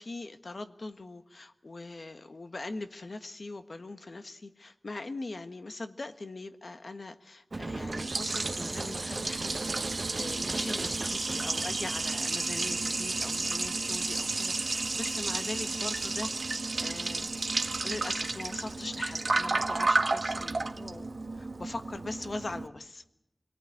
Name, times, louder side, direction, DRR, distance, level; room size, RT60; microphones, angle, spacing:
voice 1, 0.0-9.6 9.9-17.3 17.8-23.0, left 2 dB, 75° left, 8 dB, 1.5 m, -41 dB
sound 1, 7.5-12.9, right 2 dB, 55° right, 1.0 m, -40 dB
Liquid, 7.5-22.7, right 3 dB, 80° right, 1.4 m, -32 dB
25.5 x 18.0 x 9.9 m, 0.85 s
wide cardioid pair, 60°, 0 cm